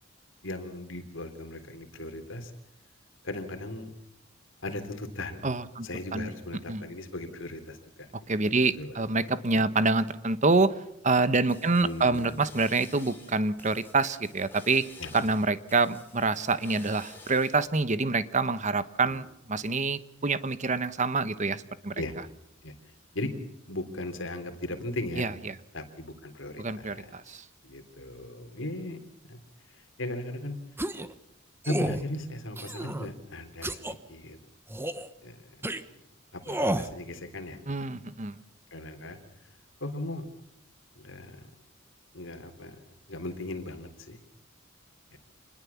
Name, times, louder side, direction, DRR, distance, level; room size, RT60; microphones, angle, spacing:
voice 1, 0.4-2.5 3.2-3.9 4.6-5.5 5.8-8.1 8.4-8.5 8.8-9.6 11.8-12.4 15.0-15.1 19.0-19.2 22.0-22.2 22.6-22.7 23.1-23.3 23.7-25.3 25.7-27.1 27.6-29.0 29.3-29.4 29.7-30.6 31.7-34.4 35.2-35.9 36.3-37.6 38.7-39.2 39.8-40.2 41.0-41.5 42.1-42.8 43.1-44.2 45.1-45.2, left 1 dB, 65° left, 7 dB, 3.6 m, -37 dB
voice 2, 5.4-5.9 6.1-6.3 6.7-6.8 8.3-10.7 11.0-14.8 15.1-21.9 25.2-25.5 26.6-27.4 37.7-38.4, right 3 dB, 35° right, 14 dB, 1.1 m, -26 dB
sound 1, 11.3-17.7, left 3 dB, 10° left, 5.3 m, -51 dB
sound 2, 30.8-31.1 31.6-32.0 32.6-33.1 33.6-33.9 34.7-35.1 35.6-35.8 36.5-36.9, right 1 dB, 10° right, 1.1 m, -31 dB
27.0 x 21.0 x 7.2 m, 0.77 s
head